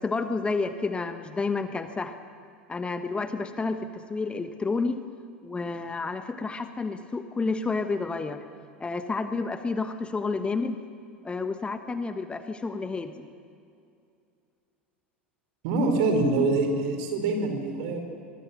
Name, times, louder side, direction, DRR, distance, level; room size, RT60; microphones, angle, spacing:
voice 1, 0.0-2.2 2.7-5.0 5.4-8.4 8.8-10.8 11.2-13.3, left 4 dB, 15° left, 9 dB, 1.2 m, -30 dB
voice 2, 15.6-18.0, right 3 dB, 55° right, 5 dB, 4.4 m, -25 dB
24.0 x 23.5 x 6.2 m, 2.5 s
figure-of-eight pair, 80°, 6 cm